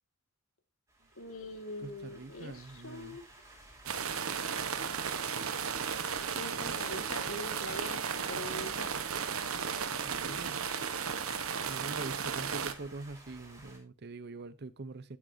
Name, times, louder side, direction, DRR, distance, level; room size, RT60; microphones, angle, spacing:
sound 1, 0.9-13.8, right 1 dB, 15° right, 3.4 m, -55 dB
voice 1, 1.2-3.2 6.3-8.9, left 1 dB, 70° left, 1.9 m, -43 dB
voice 2, 1.8-3.2 10.0-10.6 11.7-15.2, right 3 dB, 50° right, 0.6 m, -44 dB
sound 2, 3.9-12.7, right 6 dB, 75° right, 1.1 m, -35 dB
11.5 x 9.8 x 2.7 m
head